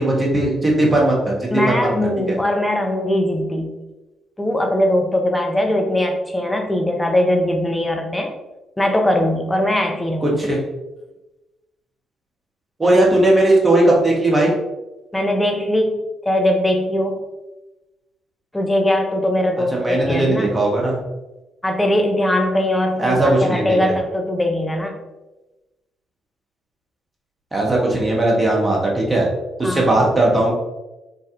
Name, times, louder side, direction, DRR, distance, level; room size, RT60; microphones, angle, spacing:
voice 1, 0.0-2.4 10.2-10.6 12.8-14.5 19.7-21.0 23.0-23.9 27.5-29.3 29.6-30.5, right 1 dB, 25° right, -3 dB, 1.1 m, -18 dB
voice 2, 1.5-3.7 4.4-8.3 8.8-10.4 15.1-16.0 16.2-17.2 18.5-20.5 21.6-24.9 29.6-29.9, left 1 dB, 10° left, 3 dB, 0.6 m, -20 dB
3.3 x 2.3 x 2.8 m, 1.1 s
hypercardioid pair, 45°, 0 cm